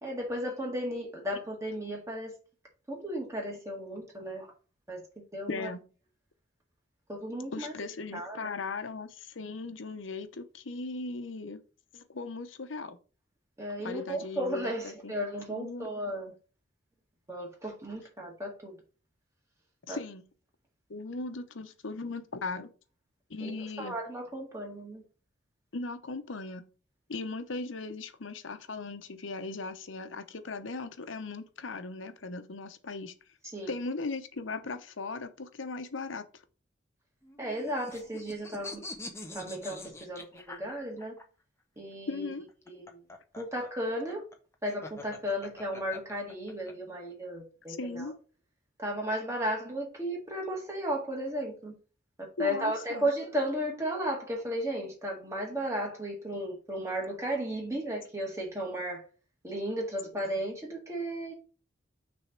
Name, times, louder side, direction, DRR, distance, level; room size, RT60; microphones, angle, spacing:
voice 1, 0.0-2.3 2.9-4.5 4.9-5.0 5.3-5.7 7.1-8.4 13.6-16.3 17.3-18.7 19.9-20.0 23.4-25.0 33.4-33.7 37.4-38.8 39.3-41.1 41.8-42.3 42.7-43.0 43.4-44.2 44.6-48.1 48.8-51.7 52.2-59.0 59.4-61.3, equal, 15° right, 1.8 m, -34 dB
voice 2, 5.5-5.8 7.5-11.6 11.9-13.0 13.8-15.1 15.5-15.9 19.9-20.2 20.9-22.7 23.3-24.0 25.7-26.7 27.1-33.1 33.7-36.3 42.1-42.5 47.7-48.1 52.4-53.1, left 3 dB, 90° left, 0.8 m, -38 dB
sound 1, 37.2-41.2 42.5-46.7, left 2 dB, 15° left, 0.8 m, -44 dB
6.3 x 3.5 x 5.8 m
head